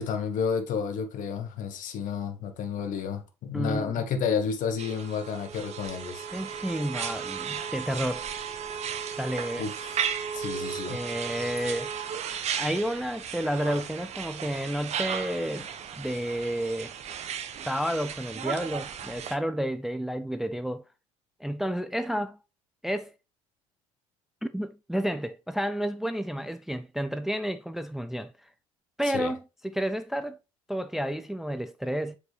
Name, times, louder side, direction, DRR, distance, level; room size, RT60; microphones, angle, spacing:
voice 1, 0.0-6.2 9.6-10.0 10.3-11.0 29.1-29.3, left 6 dB, 50° left, 1.5 m, -31 dB
voice 2, 3.5-3.9 6.3-8.3 9.2-9.7 10.9-11.9 12.5-15.7 16.0-17.0 17.7-20.8 21.4-22.4 22.8-23.1 24.5-28.5 29.0-30.4 30.7-32.2, equal, ahead, 0.6 m, -31 dB
sound 1, 4.8-19.4, right 8 dB, 40° right, 1.0 m, -35 dB
7.8 x 5.0 x 3.4 m
figure-of-eight pair, 60°, 17 cm